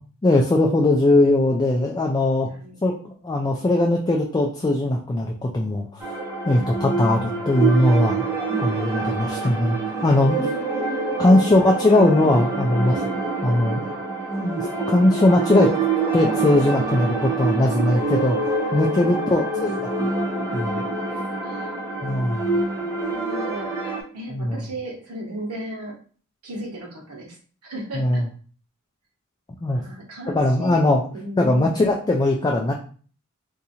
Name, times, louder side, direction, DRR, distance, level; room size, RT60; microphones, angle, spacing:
voice 1, 0.2-2.5 2.8-2.9 3.2-6.0 6.5-8.3 8.6-9.8 10.0-10.4 11.2-13.0 13.4-13.8 14.4-15.7 16.1-18.4 18.7-19.8 20.5-20.8 22.0-22.5 24.3-24.7 27.9-28.3 29.6-29.8 30.3-31.0 31.4-32.7, left 1 dB, 20° left, 0 dB, 0.3 m, -19 dB
sound 1, 6.0-24.0, right 3 dB, 15° right, 0.8 m, -26 dB
voice 2, 19.0-19.7 21.4-21.7 22.1-25.9 26.4-27.4 27.6-28.2 29.7-31.8, right 1 dB, 90° right, 0 dB, 1.2 m, -36 dB
2.7 x 2.5 x 4.1 m, 0.42 s
head